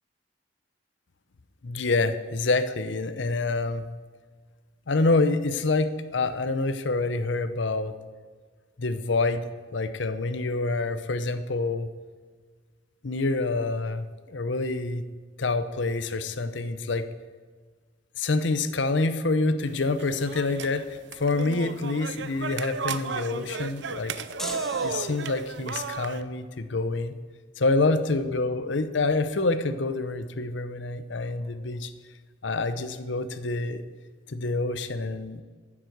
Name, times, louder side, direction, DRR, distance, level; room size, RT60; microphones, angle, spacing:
voice 1, 1.6-3.9 4.9-7.9 8.8-11.9 13.0-15.0 15.4-17.1 18.2-24.6 24.8-27.2 27.6-31.9 32.4-33.8 34.3-35.4, left 3 dB, 70° left, 11 dB, 0.7 m, -27 dB
sound 1, 19.6-26.2, right 5 dB, 65° right, 0.6 m, -34 dB
sound 2, 24.4-25.7, equal, ahead, 0.6 m, -39 dB
10.5 x 7.5 x 8.0 m, 1.5 s
head